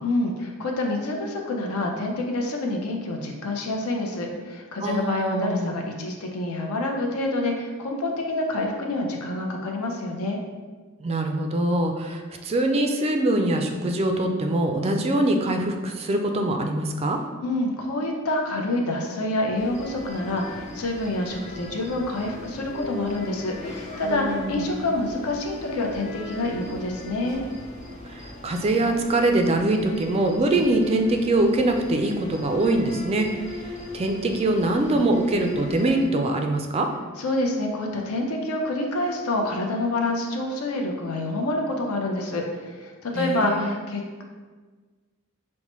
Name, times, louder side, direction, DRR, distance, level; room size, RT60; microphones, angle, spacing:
voice 1, 0.0-10.4 17.4-27.4 37.2-44.2, left 2 dB, 75° left, 1 dB, 0.6 m, -27 dB
voice 2, 4.8-5.8 11.0-17.2 24.0-24.6 28.1-36.9 43.2-43.7, right 1 dB, 30° right, 4 dB, 0.3 m, -23 dB
sound 1, 19.5-36.1, left 1 dB, 35° left, 0.6 m, -39 dB
5.4 x 2.1 x 3.0 m, 1.4 s
head